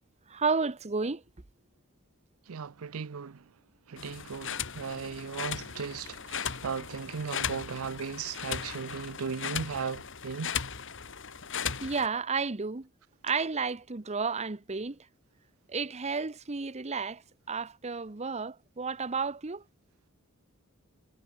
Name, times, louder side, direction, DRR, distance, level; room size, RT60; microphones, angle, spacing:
voice 1, 0.3-1.2 11.8-12.9 13.2-15.0 15.7-17.2 17.5-19.6, right 4 dB, 30° right, 0.9 m, -32 dB
voice 2, 2.5-3.4 3.9-10.5, right 6 dB, 85° right, 0.6 m, -37 dB
sound 1, 4.0-12.1, left 7 dB, 60° left, 3.8 m, -37 dB
head